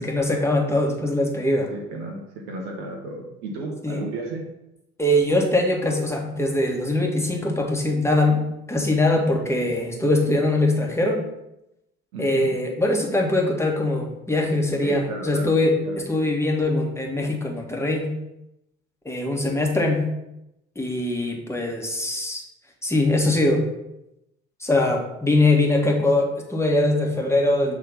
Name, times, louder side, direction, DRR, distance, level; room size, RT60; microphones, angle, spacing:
voice 1, 0.0-1.7 3.8-4.0 5.0-8.4 8.7-11.2 12.2-15.8 16.1-18.1 19.0-20.1 20.7-22.4 22.8-23.7 24.6-27.8, left 2 dB, 10° left, 1 dB, 1.6 m, -22 dB
voice 2, 1.7-4.4 12.1-12.5 14.8-15.6 15.8-16.0, right 2 dB, 60° right, 0 dB, 1.4 m, -33 dB
6.5 x 3.6 x 5.5 m, 0.88 s
figure-of-eight pair, 55°, 34 cm